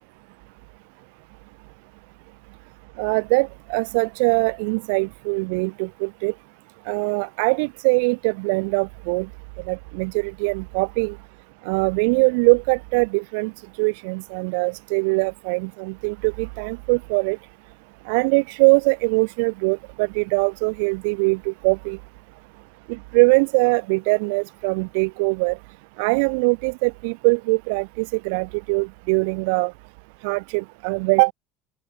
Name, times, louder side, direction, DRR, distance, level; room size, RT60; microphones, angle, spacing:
voice 1, 3.0-6.3 6.9-9.3 9.7-11.1 11.6-13.5 13.8-17.4 18.1-22.0 22.9-25.6 26.0-29.7 30.2-31.3, right 32 dB, 65° right, 1.5 m, -22 dB
open air
figure-of-eight pair, 70°, 0 cm